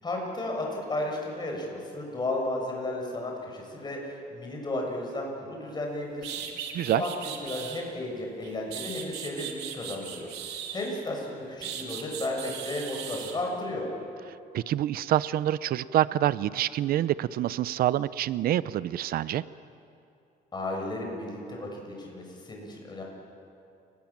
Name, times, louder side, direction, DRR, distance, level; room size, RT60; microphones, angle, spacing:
voice 1, 0.0-6.4 6.8-13.9 20.5-23.0, left 1 dB, 25° left, 0 dB, 7.1 m, -34 dB
sound 1, 5.8-5.9 6.2-7.8 8.4-11.1 11.6-13.4, right 9 dB, 80° right, 2.9 m, -38 dB
voice 2, 14.5-19.4, right 12 dB, 60° right, 17 dB, 0.6 m, -26 dB
30.0 x 20.0 x 7.4 m, 2.6 s
cardioid pair, 110°, 17 cm